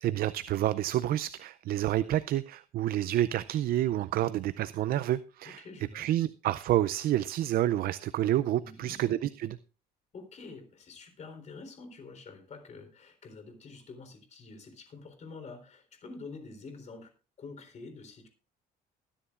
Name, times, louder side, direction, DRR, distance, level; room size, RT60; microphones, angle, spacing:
voice 1, 0.0-5.6 5.9-9.6, right 13 dB, 60° right, 0.5 m, -29 dB
voice 2, 5.4-6.1 8.6-9.0 10.1-17.1 17.4-18.3, left 4 dB, 45° left, 3.8 m, -47 dB
21.0 x 10.0 x 2.5 m
cardioid pair, 110°, 17 cm